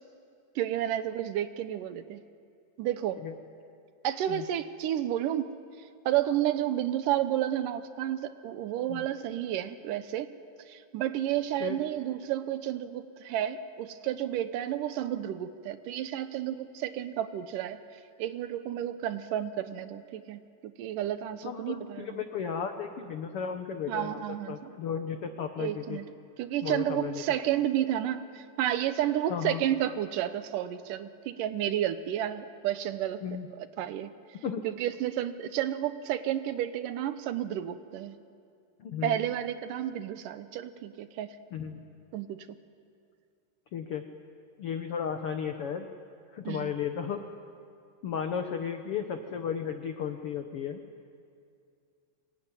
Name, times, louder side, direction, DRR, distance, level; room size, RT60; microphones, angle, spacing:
voice 1, 0.6-2.2 2.8-3.2 4.0-5.5 6.1-10.3 10.6-17.8 18.2-22.2 23.9-24.7 25.6-26.1 26.4-33.2 33.5-34.1 34.6-38.2 39.0-41.3 42.1-42.5 46.5-46.7, right 11 dB, 75° right, 11 dB, 2.3 m, -31 dB
voice 2, 21.4-24.2 24.5-26.0 26.6-27.2 29.3-29.6 33.2-33.5 34.4-34.6 38.8-39.2 41.5-41.8 43.7-44.0 44.6-45.9 46.3-47.2 48.0-50.8, left 7 dB, 85° left, 6 dB, 1.2 m, -34 dB
25.0 x 21.0 x 9.6 m, 2.4 s
omnidirectional pair, 4.2 m